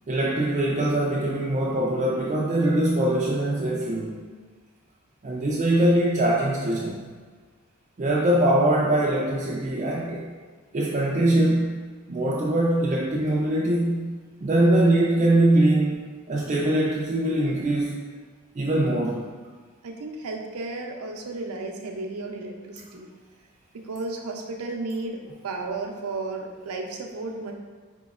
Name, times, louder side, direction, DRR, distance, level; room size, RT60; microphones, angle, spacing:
voice 1, 0.1-4.2 5.2-7.0 8.0-10.2 10.7-14.1 14.4-18.0 18.6-19.2, right 1 dB, 35° right, -4 dB, 0.4 m, -22 dB
voice 2, 19.8-23.1 23.7-27.5, right 3 dB, 90° right, 2 dB, 0.5 m, -33 dB
5.2 x 2.9 x 2.3 m, 1.5 s
head